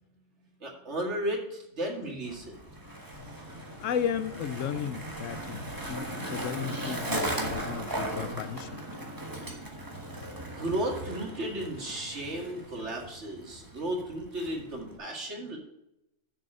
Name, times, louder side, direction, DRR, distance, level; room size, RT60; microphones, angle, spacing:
voice 1, 0.6-2.5 10.4-15.6, right 1 dB, 60° right, 0 dB, 2.3 m, -34 dB
Skateboard, 2.2-15.0, right 1 dB, 15° right, 1.3 m, -37 dB
voice 2, 3.8-8.8, left 8 dB, 75° left, 12 dB, 1.0 m, -34 dB
7.0 x 6.6 x 6.4 m, 0.85 s
omnidirectional pair, 1.3 m